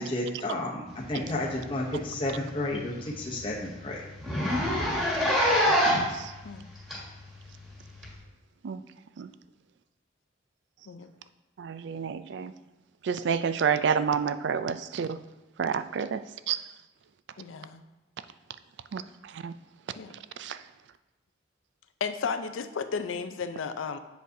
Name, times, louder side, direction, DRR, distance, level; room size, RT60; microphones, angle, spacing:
voice 1, 0.0-4.0, left 1 dB, 25° left, -3 dB, 0.8 m, -31 dB
Zipper (clothing), 1.6-1.8 2.1-2.2 2.6-2.7 3.0-3.1 3.4-3.5 4.2-6.2 6.9-7.0 8.0-8.1, equal, ahead, 1.6 m, -24 dB
voice 2, 4.5-5.1 6.4-6.7 10.9-11.1 17.4-17.8 20.0-20.1 22.0-24.0, left 5 dB, 90° left, 10 dB, 0.5 m, -34 dB
voice 3, 5.5-6.3 8.6-8.8 9.2-9.3 11.6-12.5 13.0-15.2 15.6-16.6 18.9-19.5 20.4-20.6, right 6 dB, 65° right, 12 dB, 0.3 m, -30 dB
7.9 x 6.3 x 2.7 m, 1.1 s
head